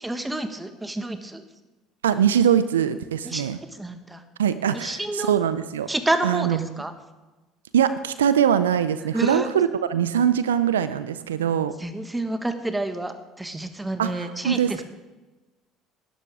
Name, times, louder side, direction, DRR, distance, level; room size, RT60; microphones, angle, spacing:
voice 1, 0.0-1.4 3.2-3.5 3.8-4.2 4.7-5.3 5.9-6.9 9.1-9.5 11.8-14.8, right 2 dB, 10° right, 8 dB, 1.6 m, -29 dB
voice 2, 2.0-3.6 4.4-5.9 6.2-6.8 7.7-11.7 14.0-14.8, right 9 dB, 85° right, 13 dB, 0.5 m, -22 dB
18.0 x 11.5 x 3.7 m, 1.2 s
hypercardioid pair, 65°, 0 cm